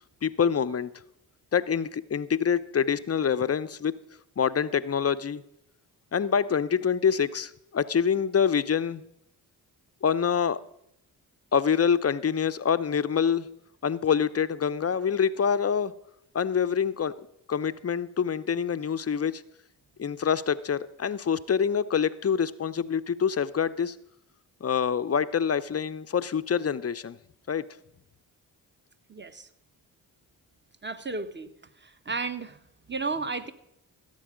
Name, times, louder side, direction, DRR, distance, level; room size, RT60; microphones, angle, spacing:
voice 1, 0.2-0.9 1.5-3.9 4.4-5.4 6.1-9.0 10.0-10.6 11.5-13.5 13.8-15.9 16.3-19.4 20.0-24.0 24.6-27.2 27.5-27.6, left 7 dB, 30° left, 0.6 m, -26 dB
voice 2, 29.1-29.5 30.8-31.5 31.8-33.5, right 4 dB, 25° right, 1.2 m, -33 dB
15.5 x 7.6 x 5.1 m
hypercardioid pair, 40°, 47 cm